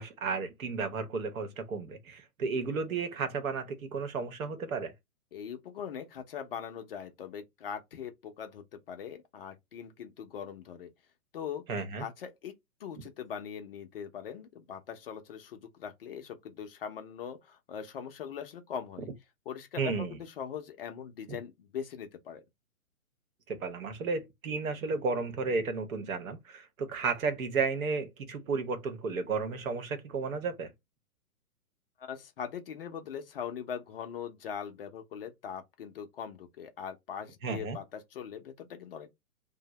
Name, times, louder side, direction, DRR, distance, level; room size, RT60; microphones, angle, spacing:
voice 1, 0.0-4.9 11.7-12.0 19.8-20.1 21.3-21.4 23.5-30.7 37.4-37.8, right 4 dB, 65° right, 0.9 m, -33 dB
voice 2, 5.3-10.9 11.3-11.6 12.0-19.1 19.5-22.4 32.0-39.1, left 8 dB, 40° left, 0.5 m, -41 dB
2.6 x 2.1 x 3.0 m
hypercardioid pair, 135°, 45 cm